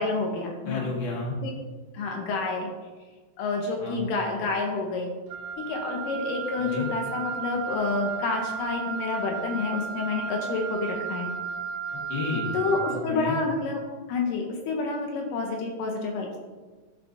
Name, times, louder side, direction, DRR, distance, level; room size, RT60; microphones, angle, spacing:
voice 1, 0.0-0.9 1.4-1.5 1.9-2.7 3.4-5.2 5.6-11.3 12.5-16.4, left 3 dB, 75° left, 1 dB, 2.3 m, -29 dB
voice 2, 0.6-1.4 3.8-4.0 6.6-6.9 11.9-12.5 12.9-13.4, left 4 dB, 40° left, -4 dB, 1.6 m, -32 dB
Wind instrument woodwind instrument, 5.3-13.1, right 6 dB, 85° right, 2.3 m, -34 dB
12.5 x 4.8 x 2.6 m, 1.3 s
omnidirectional pair, 4.1 m